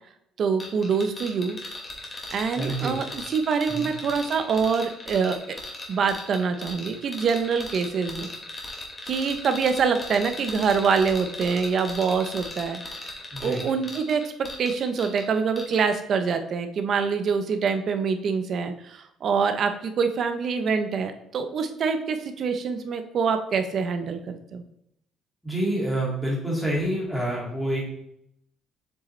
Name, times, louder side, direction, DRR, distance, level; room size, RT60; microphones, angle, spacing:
voice 1, 0.4-1.6 2.3-5.6 5.9-8.3 9.1-13.2 13.4-14.2 14.6-24.6, right 5 dB, 40° right, 8 dB, 0.6 m, -25 dB
sound 1, 0.6-15.3 15.6-15.8, left 2 dB, 20° left, 1.3 m, -38 dB
voice 2, 2.6-3.0 3.7-3.9 13.3-13.6 25.4-27.8, right 1 dB, 5° left, -5 dB, 2.0 m, -27 dB
7.2 x 4.9 x 3.1 m, 0.76 s
cardioid pair, 170°, 0 cm